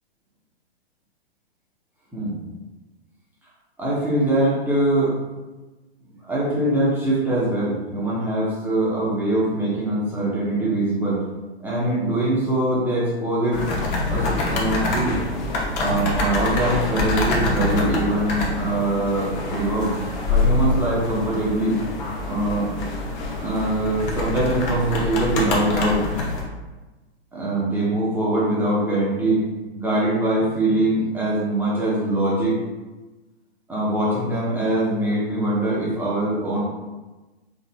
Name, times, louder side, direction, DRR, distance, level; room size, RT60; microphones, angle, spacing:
voice 1, 3.8-5.1 6.2-11.2 11.6-13.6 14.1-15.2 15.8-19.9 20.3-21.7 22.3-22.7 23.4-26.0 27.3-29.4 29.7-32.5 33.7-36.6, right 1 dB, 5° right, -7 dB, 0.9 m, -23 dB
sound 1, 13.5-26.4, left 2 dB, 40° left, 0.9 m, -25 dB
3.8 x 3.6 x 2.2 m, 1.2 s
hypercardioid pair, 120°, 32 cm